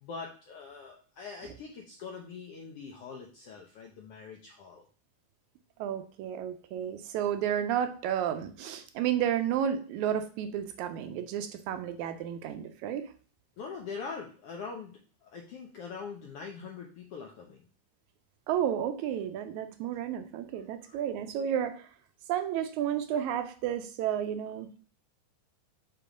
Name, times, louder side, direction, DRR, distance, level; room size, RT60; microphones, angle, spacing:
voice 1, 0.0-4.8 13.6-17.7 20.5-21.0, left 5 dB, 75° left, 1 dB, 1.3 m, -43 dB
voice 2, 5.8-13.1 18.5-21.9 22.3-24.7, right 9 dB, 80° right, 9 dB, 1.9 m, -32 dB
6.7 x 3.0 x 4.9 m, 0.40 s
omnidirectional pair, 3.6 m